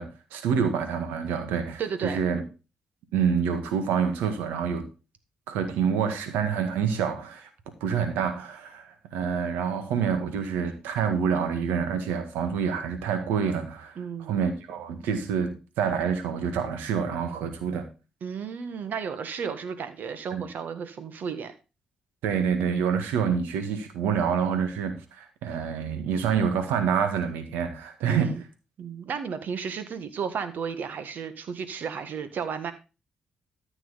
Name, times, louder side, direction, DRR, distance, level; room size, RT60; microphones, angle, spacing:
voice 1, 0.0-2.4 3.1-4.8 5.5-7.5 7.8-17.9 20.3-20.4 22.2-28.4, right 7 dB, 85° right, 1.8 m, -27 dB
voice 2, 1.8-2.2 14.0-14.4 18.2-21.5 28.1-28.4 28.8-32.7, right 6 dB, 65° right, 1.7 m, -33 dB
13.5 x 6.1 x 4.1 m
hypercardioid pair, 45°, 3 cm